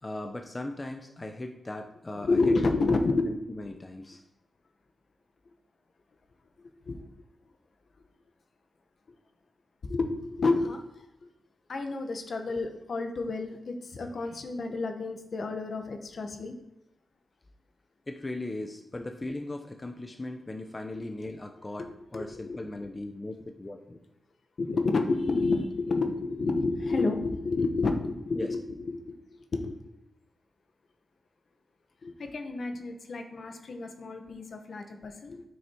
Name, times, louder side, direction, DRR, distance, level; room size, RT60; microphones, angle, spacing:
voice 1, 0.0-2.6 2.8-3.0 3.3-4.2 18.1-24.0 28.3-28.5, left 2 dB, 25° left, 4 dB, 0.8 m, -38 dB
voice 2, 2.2-3.3 6.9-7.0 9.8-11.0 11.7-16.5 22.1-22.6 24.6-28.6 28.9-29.2 29.5-29.7 32.0-35.4, left 3 dB, 55° left, 5 dB, 1.3 m, -29 dB
9.2 x 6.3 x 4.6 m, 0.88 s
wide cardioid pair, 105°, 0 cm